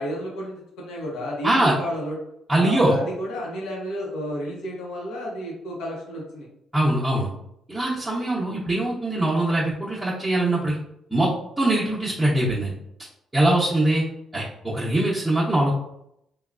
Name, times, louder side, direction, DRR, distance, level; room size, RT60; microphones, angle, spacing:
voice 1, 0.0-2.2 2.6-6.5 13.7-13.8, equal, 90° left, -3 dB, 0.9 m, -32 dB
voice 2, 1.4-1.8 2.5-2.9 6.7-7.3 7.7-10.8 11.1-11.3 11.6-12.7 13.3-14.0 14.3-15.7, right 1 dB, 10° right, -9 dB, 0.8 m, -22 dB
3.3 x 2.3 x 2.4 m, 0.79 s
cardioid pair, 90°, 0 cm